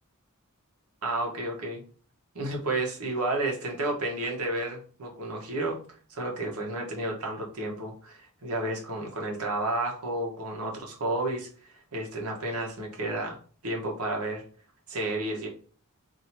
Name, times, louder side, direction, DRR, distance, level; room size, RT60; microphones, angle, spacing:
voice 1, 1.0-1.8 2.3-5.8 6.1-13.4 13.6-14.4 14.9-15.5, right 2 dB, 85° right, 1 dB, 1.1 m, -31 dB
2.8 x 2.8 x 4.4 m, 0.42 s
head